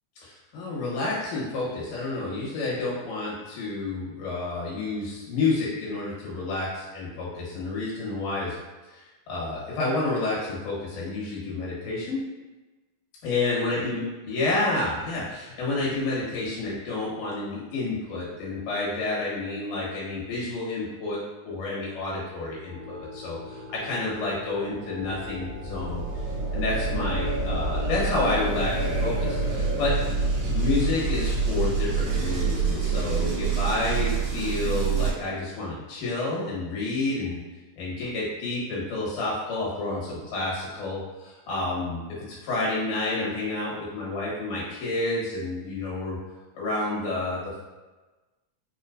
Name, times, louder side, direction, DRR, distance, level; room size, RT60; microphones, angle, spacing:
voice 1, 0.2-8.6 8.8-12.2 13.2-26.0 26.5-30.0 30.5-37.4 37.8-46.2 46.6-47.6, left 2 dB, 85° left, -5 dB, 2.8 m, -29 dB
sound 1, 22.7-35.1, right 4 dB, 65° right, 1.5 m, -28 dB
5.4 x 2.6 x 2.5 m, 1.2 s
omnidirectional pair, 3.5 m